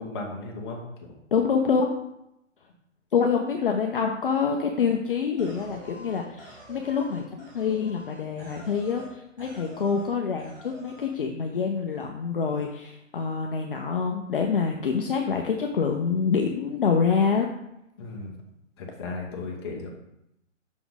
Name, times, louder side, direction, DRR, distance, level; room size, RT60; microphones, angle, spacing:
voice 1, 0.0-1.1 18.0-18.3 18.8-19.9, left 3 dB, 20° left, -1 dB, 1.0 m, -36 dB
voice 2, 1.3-1.9 3.1-17.5, left 6 dB, 45° left, 3 dB, 0.6 m, -26 dB
sound 1, 5.4-9.1 9.4-10.1 10.4-11.1, equal, 10° right, 0.9 m, -46 dB
6.0 x 5.8 x 4.0 m, 0.84 s
hypercardioid pair, 160°, 38 cm